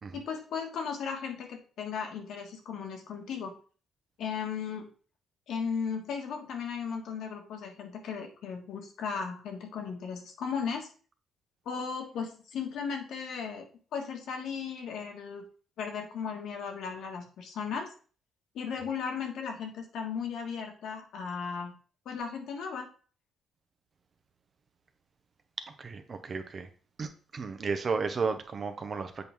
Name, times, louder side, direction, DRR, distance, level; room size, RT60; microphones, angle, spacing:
voice 1, 0.1-3.5 4.2-4.9 5.5-10.9 11.6-13.7 13.9-15.5 15.8-17.9 18.5-21.7 22.0-22.9, left 6 dB, 75° left, 1.6 m, -36 dB
voice 2, 25.8-26.7 27.0-29.2, right 4 dB, 40° right, 0.9 m, -33 dB
7.9 x 4.5 x 3.6 m
cardioid pair, 90°, 0 cm